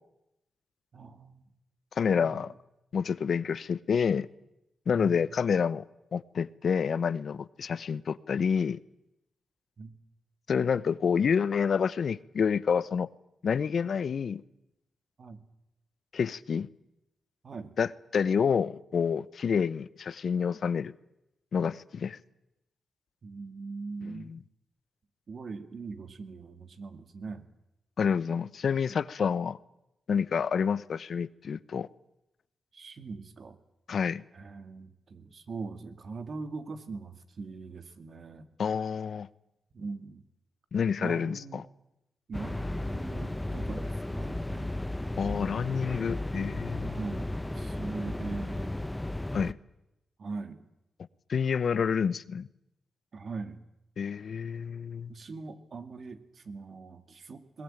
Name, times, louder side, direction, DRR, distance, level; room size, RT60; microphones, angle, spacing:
voice 1, 0.9-1.5 2.0-2.5 5.0-5.3 9.8-9.9 15.2-15.4 17.4-17.7 23.2-24.3 25.3-27.5 32.7-33.6 34.3-38.5 39.7-40.2 41.0-41.6 42.3-44.7 46.8-48.7 50.2-50.6 53.1-53.6 55.1-57.6, right 4 dB, 60° right, 2.3 m, -41 dB
voice 2, 2.0-2.5 2.9-4.3 4.9-5.8 6.1-8.8 10.5-13.1 13.4-14.4 16.1-16.7 17.8-20.9 21.5-22.2 24.1-24.4 28.0-29.6 30.1-31.9 33.9-34.2 38.6-39.3 40.7-41.6 45.2-47.0 49.3-49.6 51.3-52.5 54.0-55.1, left 6 dB, 65° left, 0.8 m, -28 dB
sound 1, 42.3-49.5, left 1 dB, 10° left, 1.0 m, -34 dB
21.5 x 20.5 x 9.0 m
cardioid pair, 60°, 0 cm